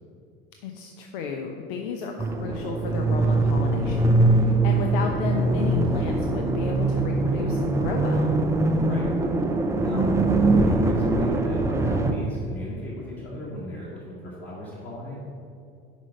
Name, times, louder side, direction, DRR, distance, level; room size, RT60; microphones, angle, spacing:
voice 1, 0.6-8.3, left 5 dB, 55° left, 3 dB, 0.6 m, -33 dB
sound 1, 2.2-12.1, right 2 dB, 10° right, 0.4 m, -22 dB
voice 2, 10.5-15.2, left 1 dB, 35° left, -6 dB, 1.7 m, -37 dB
5.3 x 5.0 x 6.3 m, 2.5 s
figure-of-eight pair, 70°, 31 cm